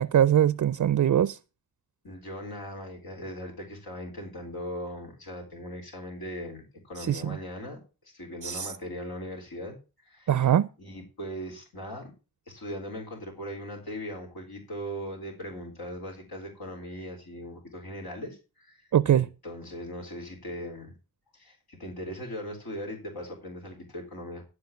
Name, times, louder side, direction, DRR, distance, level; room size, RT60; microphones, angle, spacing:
voice 1, 0.0-1.4 7.1-7.4 8.4-8.7 10.3-10.7 18.9-19.3, right 10 dB, 60° right, 0.5 m, -22 dB
voice 2, 2.0-7.8 8.0-9.8 10.0-12.1 12.5-18.9 19.1-20.9 21.3-24.4, equal, 85° left, 3.8 m, -39 dB
14.5 x 4.8 x 7.1 m
wide cardioid pair, 85°, 36 cm